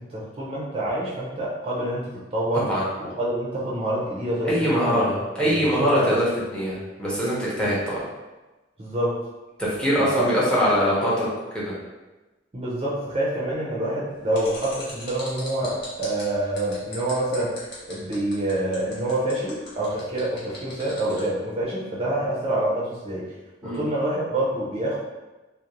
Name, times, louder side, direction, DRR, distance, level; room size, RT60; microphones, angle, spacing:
voice 1, 0.0-2.7 3.0-5.0 5.4-6.1 8.8-9.2 10.0-10.3 12.5-17.5 17.9-23.2 23.6-25.0, right 1 dB, 30° right, -6 dB, 0.5 m, -27 dB
voice 2, 2.5-2.8 4.4-6.2 6.5-8.0 9.6-11.3 11.5-11.7 23.6-23.8, equal, 5° left, -7 dB, 0.7 m, -23 dB
sound 1, 14.3-21.2, left 2 dB, 60° left, 0.8 m, -40 dB
2.5 x 2.0 x 2.8 m, 1.1 s
head